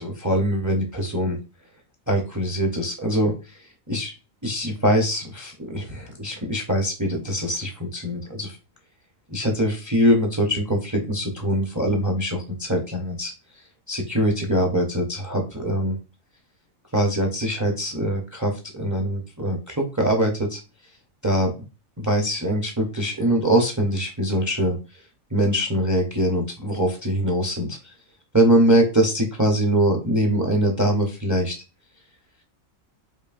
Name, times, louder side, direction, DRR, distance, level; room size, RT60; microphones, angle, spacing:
voice 1, 0.0-1.4 2.1-4.1 4.4-8.6 9.3-13.3 13.9-16.0 16.9-20.6 21.2-21.5 22.0-24.8 25.3-27.9 28.3-31.5, equal, 20° right, 2 dB, 0.5 m, -23 dB
5.0 x 2.6 x 2.4 m, 0.31 s
omnidirectional pair, 1.4 m